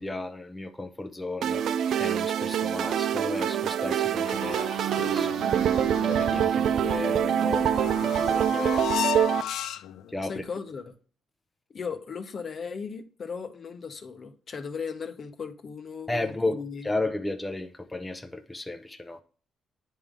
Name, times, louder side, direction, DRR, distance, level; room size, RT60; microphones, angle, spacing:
voice 1, 0.0-5.3 6.0-8.8 10.1-10.4 16.1-16.6 16.8-19.2, left 2 dB, 15° left, 0.6 m, -34 dB
sound 1, 1.4-9.4, right 9 dB, 70° right, 0.3 m, -25 dB
sound 2, 4.3-10.1, left 11 dB, 80° left, 0.3 m, -35 dB
voice 2, 10.2-10.9 11.7-16.9, left 5 dB, 50° left, 0.8 m, -37 dB
9.4 x 3.7 x 3.5 m
cardioid pair, 90°, 0 cm